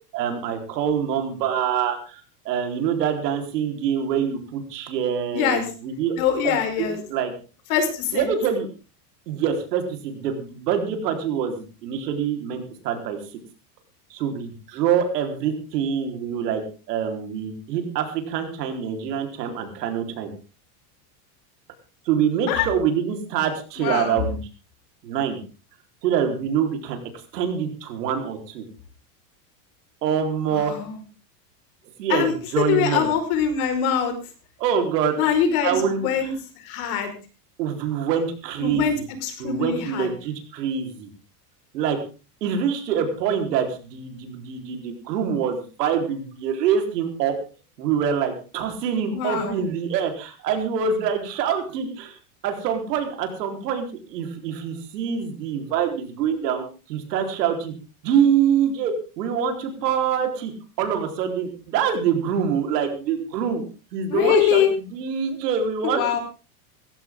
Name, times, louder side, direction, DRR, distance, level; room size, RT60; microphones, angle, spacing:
voice 1, 0.1-6.1 6.4-7.3 8.1-8.7 9.3-13.2 14.1-16.6 16.9-20.3 22.1-24.4 25.0-25.4 26.0-27.0 27.3-28.6 30.0-30.7 32.0-33.1 34.6-35.2 35.6-36.3 37.6-39.1 39.4-41.1 41.7-42.0 42.4-47.4 47.8-52.2 52.4-56.6 56.9-57.7 58.0-60.5 60.8-63.6 63.9-66.2, right 7 dB, 85° right, 5 dB, 4.2 m, -25 dB
voice 2, 5.3-5.6 6.2-7.0 7.7-8.3 22.5-22.7 23.8-24.2 30.5-31.0 32.1-34.1 35.2-36.3 36.6-37.1 38.6-39.0 39.2-40.1 49.1-49.6 64.1-64.7 65.8-66.2, left 8 dB, 60° left, 6 dB, 5.0 m, -23 dB
18.0 x 15.0 x 3.7 m, 0.34 s
supercardioid pair, 165°, 47 cm